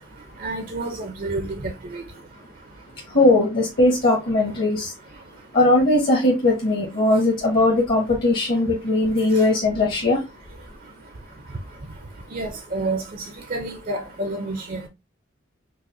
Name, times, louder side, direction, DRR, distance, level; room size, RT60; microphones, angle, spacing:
voice 1, 0.4-2.0 12.3-13.0 13.5-14.9, right 2 dB, 45° right, 0.5 m, -29 dB
voice 2, 3.1-4.9 5.5-10.2, left 2 dB, 50° left, 1.2 m, -19 dB
4.6 x 2.0 x 2.6 m
head